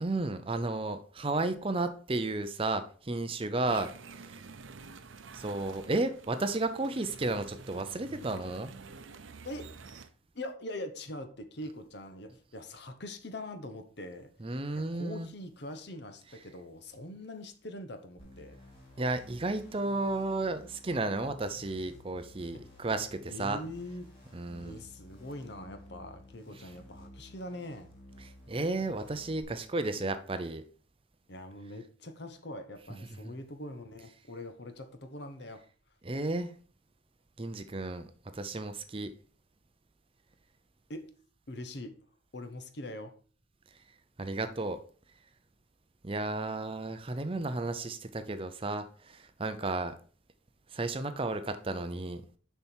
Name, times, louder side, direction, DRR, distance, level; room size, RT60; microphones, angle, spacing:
voice 1, 0.0-3.9 4.3-4.4 5.3-8.7 14.4-15.3 19.0-23.6 24.3-24.8 26.6-26.7 28.2-30.6 33.2-33.3 36.0-36.5 37.4-39.1 44.2-44.8 46.0-49.9 50.7-52.2, right 2 dB, 30° right, 0.6 m, -33 dB
sound 1, 3.7-10.1, right 4 dB, 80° right, 0.6 m, -49 dB
voice 2, 10.3-14.3 14.7-18.6 23.3-24.0 24.6-27.9 31.3-35.6 40.9-41.1 41.5-42.0 42.3-43.1, left 1 dB, 55° left, 1.0 m, -43 dB
sound 2, 18.2-29.4, left 1 dB, 30° left, 2.7 m, -54 dB
6.8 x 5.7 x 4.5 m
head